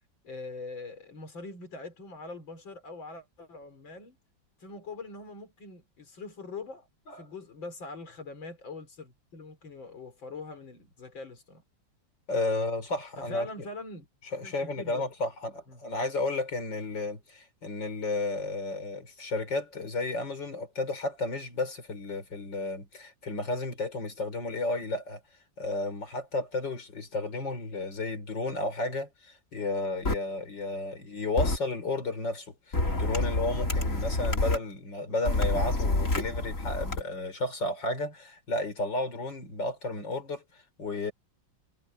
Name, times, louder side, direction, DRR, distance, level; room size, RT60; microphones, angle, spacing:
voice 1, 0.2-4.2 4.6-6.9 7.1-11.6 13.2-14.1 14.4-15.0 15.7-15.8, left 3 dB, 90° left, 4.7 m, -43 dB
voice 2, 12.3-13.7 14.3-25.2 25.6-41.1, left 2 dB, 70° left, 5.6 m, -33 dB
sound 1, 30.0-30.1 31.4-31.6 32.7-34.6 35.2-37.0, left 2 dB, 40° left, 3.7 m, -27 dB
omnidirectional pair, 2.0 m